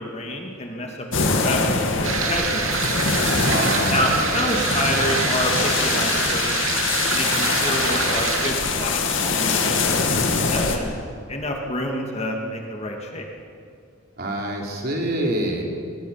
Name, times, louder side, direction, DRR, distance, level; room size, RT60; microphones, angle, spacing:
voice 1, 0.0-2.9 3.9-6.7 7.1-10.9 11.3-13.3, left 1 dB, 30° left, 1 dB, 2.3 m, -28 dB
sound 1, 1.1-10.8, left 4 dB, 60° left, 2.4 m, -23 dB
sound 2, 2.0-8.5, right 5 dB, 70° right, 2.7 m, -26 dB
voice 2, 3.4-4.1 4.4-4.6 14.2-15.6, right 1 dB, 45° right, 0 dB, 3.9 m, -26 dB
24.5 x 22.5 x 5.9 m, 2.3 s
head